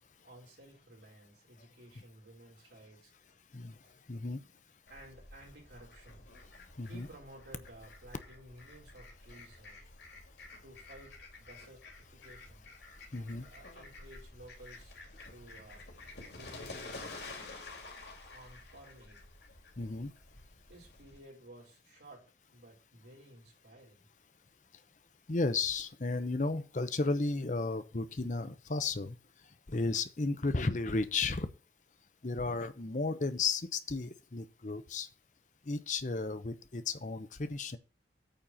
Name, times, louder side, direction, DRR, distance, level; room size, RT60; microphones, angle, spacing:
voice 1, 0.2-3.1 3.8-4.0 4.9-6.3 6.8-9.8 10.6-12.7 13.1-14.9 15.3-15.9 16.3-17.4 18.3-19.3 20.7-24.1, right 1 dB, 80° right, 4.4 m, -55 dB
voice 2, 3.5-4.4 6.7-7.1 13.0-13.5 15.2-15.3 19.8-20.1 25.3-31.5 32.2-35.1 35.6-37.8, left 3 dB, 45° left, 0.8 m, -34 dB
Fowl, 4.9-21.2, left 2 dB, 70° left, 3.0 m, -50 dB
9.0 x 4.3 x 7.4 m
head